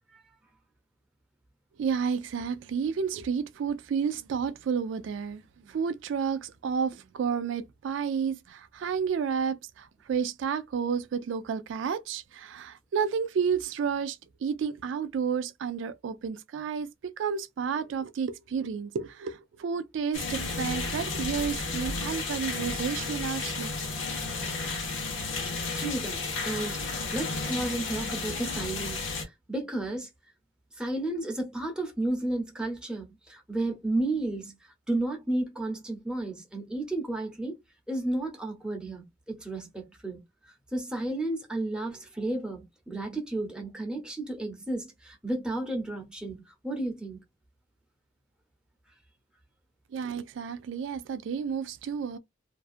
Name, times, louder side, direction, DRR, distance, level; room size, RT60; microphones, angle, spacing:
voice 1, 1.8-23.7 49.9-52.2, right 6 dB, 75° right, 0.3 m, -31 dB
sound 1, 20.1-29.2, left 3 dB, 85° left, 0.9 m, -33 dB
voice 2, 25.7-26.8 27.1-30.1 30.7-37.5 37.9-40.2 40.7-47.2, right 2 dB, 5° right, 0.7 m, -32 dB
2.6 x 2.3 x 2.4 m
head